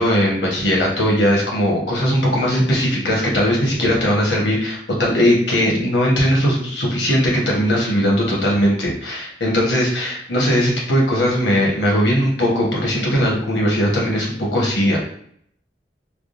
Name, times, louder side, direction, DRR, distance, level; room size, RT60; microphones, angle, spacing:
voice 1, 0.0-15.0, equal, 85° left, -3 dB, 1.1 m, -19 dB
3.4 x 2.3 x 2.5 m, 0.64 s
head